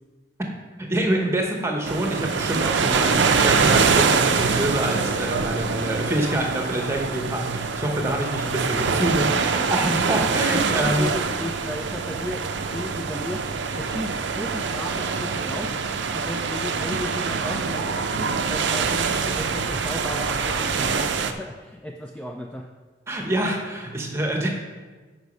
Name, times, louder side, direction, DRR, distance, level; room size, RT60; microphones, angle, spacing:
voice 1, 0.8-11.1 23.1-24.5, right 1 dB, 15° right, 1 dB, 1.0 m, -26 dB
sound 1, 1.9-21.3, right 5 dB, 75° right, 0.5 m, -24 dB
sound 2, 7.9-21.1, equal, 30° left, 2.7 m, -46 dB
voice 2, 10.4-22.7, left 1 dB, 5° left, 2 dB, 0.3 m, -34 dB
8.1 x 5.2 x 5.4 m, 1.4 s
head